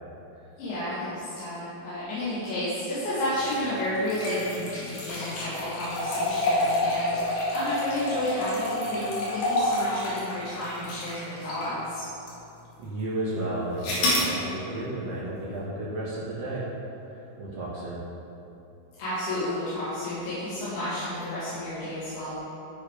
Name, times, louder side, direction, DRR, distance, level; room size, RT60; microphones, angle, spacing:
voice 1, 0.6-12.1 19.0-22.4, left 1 dB, 90° left, -13 dB, 4.9 m, -31 dB
sound 1, 3.3-11.8 12.3-12.4 13.8-14.3, left 1 dB, 70° left, 3.8 m, -28 dB
voice 2, 12.8-16.6 17.2-18.0, right 1 dB, 85° right, -8 dB, 1.3 m, -33 dB
13.5 x 5.0 x 5.0 m, 2.9 s
omnidirectional pair, 5.0 m